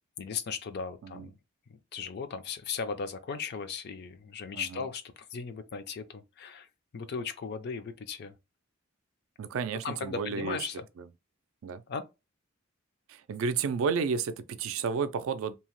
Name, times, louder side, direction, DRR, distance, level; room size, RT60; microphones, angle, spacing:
voice 1, 0.2-1.4 1.7-6.7 6.9-8.3 9.8-10.8 11.9-12.1, left 5 dB, 55° left, 0.4 m, -37 dB
voice 2, 4.5-4.9 9.4-10.6 11.0-11.1 11.6-11.8 13.1-15.6, right 5 dB, 75° right, 0.3 m, -32 dB
2.8 x 2.0 x 3.0 m
head